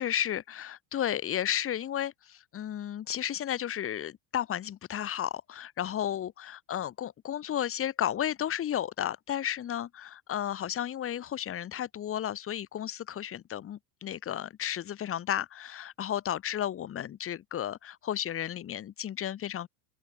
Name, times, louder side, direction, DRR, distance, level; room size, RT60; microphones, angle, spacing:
voice 1, 0.0-19.7, left 10 dB, 30° left, 1.6 m, -33 dB
open air
cardioid pair, 155°, 47 cm